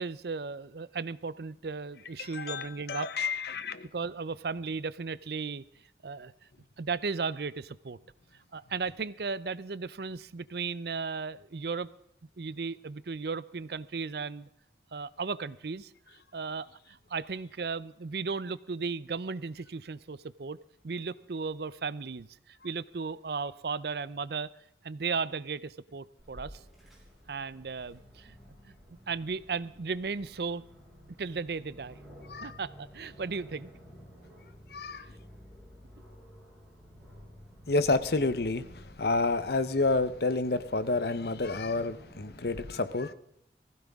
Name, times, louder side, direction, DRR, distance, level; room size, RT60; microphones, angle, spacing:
voice 1, 0.0-3.1 3.9-5.6 6.0-6.3 6.8-8.0 8.5-11.9 12.4-14.5 14.9-15.9 16.3-20.6 20.8-24.5 24.8-26.6 27.3-28.4 28.7-28.8 29.1-30.7 31.2-32.0 32.4-33.7, right 4 dB, 60° right, 17 dB, 0.5 m, -35 dB
voice 2, 2.2-3.9 32.3-32.5 34.7-35.0 37.7-43.1, left 3 dB, 60° left, 13 dB, 0.8 m, -29 dB
Aircraft, 26.2-42.6, equal, ahead, 6.0 m, -52 dB
19.5 x 16.0 x 3.6 m, 0.77 s
head